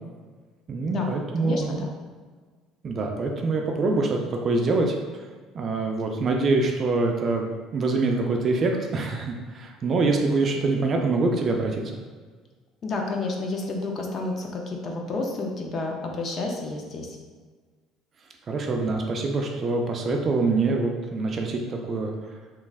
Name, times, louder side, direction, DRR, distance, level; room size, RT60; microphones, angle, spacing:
voice 1, 0.7-1.7 2.8-5.0 5.5-12.0 18.5-22.1, right 3 dB, 30° right, 2 dB, 0.3 m, -25 dB
voice 2, 1.4-1.9 12.8-17.2, left 3 dB, 35° left, 1 dB, 0.5 m, -30 dB
3.0 x 2.4 x 3.4 m, 1.5 s
cardioid pair, 160°, 0 cm